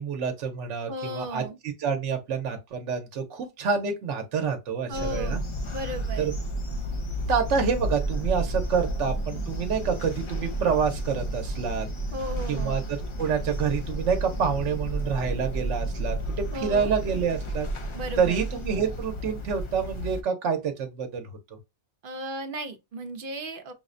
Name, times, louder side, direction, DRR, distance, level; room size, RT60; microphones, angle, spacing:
voice 1, 0.0-1.4 1.8-5.4 6.2-6.3 7.3-11.9 12.5-12.8 13.2-17.7 18.2-21.3, right 6 dB, 85° right, 1.0 m, -27 dB
voice 2, 0.9-1.6 4.9-5.4 5.7-6.3 12.1-12.8 16.5-16.9 17.9-18.4 22.0-23.7, equal, 55° right, 0.7 m, -35 dB
sound 1, 4.9-20.2, right 1 dB, 50° left, 0.3 m, -32 dB
5.6 x 2.1 x 2.5 m
omnidirectional pair, 1.2 m